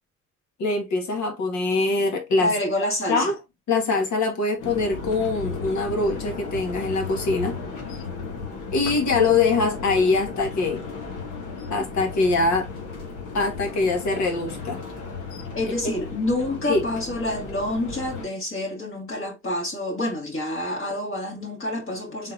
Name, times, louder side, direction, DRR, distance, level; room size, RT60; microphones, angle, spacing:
voice 1, 0.6-2.5 3.1-3.3 3.7-7.6 8.7-10.9 11.7-12.7 13.3-14.8 15.7-15.8 16.6-16.8, left 3 dB, 70° left, 1.7 m, -23 dB
voice 2, 2.4-3.3 15.5-22.3, left 1 dB, 45° left, 2.2 m, -27 dB
sound 1, 4.6-18.3, left 4 dB, 90° left, 1.4 m, -35 dB
3.9 x 3.6 x 2.7 m
cardioid pair, 90°, 30 cm